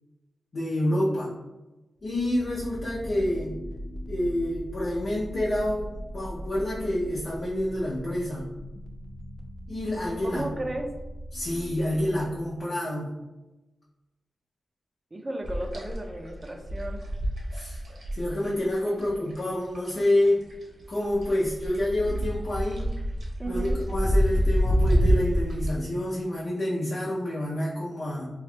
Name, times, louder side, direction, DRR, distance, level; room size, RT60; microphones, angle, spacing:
voice 1, 0.5-1.3 2.0-3.6 4.1-8.5 9.7-10.4 11.3-13.1 17.5-17.8 18.1-20.4 20.9-22.8 23.5-23.6 23.9-28.3, left 1 dB, 55° left, -7 dB, 0.6 m, -28 dB
sound 1, 2.0-12.6, equal, 15° left, 0.6 m, -40 dB
voice 2, 10.2-10.9 15.1-17.0 23.4-23.8, right 1 dB, 25° right, 3 dB, 0.5 m, -34 dB
sound 2, 15.4-20.3 20.5-25.7, equal, 70° right, 0.9 m, -26 dB
2.9 x 2.3 x 3.3 m, 1.1 s
cardioid pair, 70°, 0 cm